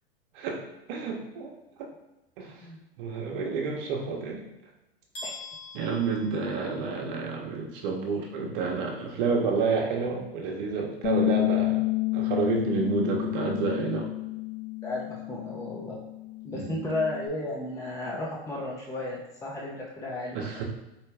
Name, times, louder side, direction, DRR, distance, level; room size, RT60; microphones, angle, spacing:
voice 1, 0.9-1.9 2.4-2.7 3.0-4.4 5.7-11.9 12.1-14.1 16.5-16.8 20.3-20.6, right 4 dB, 60° right, 0 dB, 1.0 m, -29 dB
sound 1, 5.1-7.1, left 2 dB, 70° left, 1.4 m, -43 dB
Bass guitar, 11.0-17.3, left 21 dB, 45° left, 0.7 m, -30 dB
voice 2, 14.8-16.0 16.4-20.6, left 2 dB, 10° left, -3 dB, 0.7 m, -34 dB
4.6 x 2.2 x 3.4 m, 0.97 s
hypercardioid pair, 95°, 30 cm